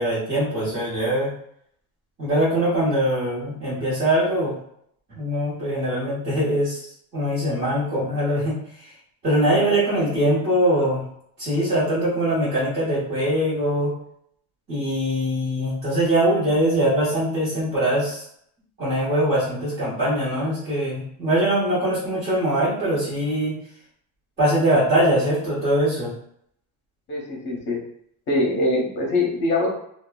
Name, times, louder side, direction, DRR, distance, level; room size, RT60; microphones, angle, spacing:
voice 1, 0.0-1.3 2.2-4.5 5.1-8.9 9.2-11.0 11.4-13.9 14.7-18.2 18.8-23.6 24.4-26.1, right 1 dB, 30° right, -12 dB, 1.2 m, -22 dB
voice 2, 9.4-9.8 27.1-27.8 28.3-29.7, left 2 dB, 35° left, -1 dB, 0.9 m, -23 dB
2.7 x 2.4 x 2.3 m, 0.70 s
cardioid pair, 160°, 33 cm